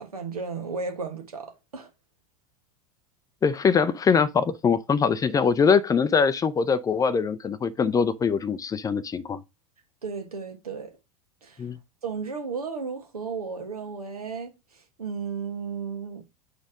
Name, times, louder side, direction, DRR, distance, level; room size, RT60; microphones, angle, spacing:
voice 1, 0.0-1.9 10.0-10.9 11.4-11.6 12.0-14.5 15.0-16.2, right 5 dB, 80° right, 1.4 m, -34 dB
voice 2, 3.4-9.4 11.6-11.8, left 6 dB, 20° left, 0.5 m, -23 dB
5.1 x 4.1 x 4.9 m
figure-of-eight pair, 85°, 19 cm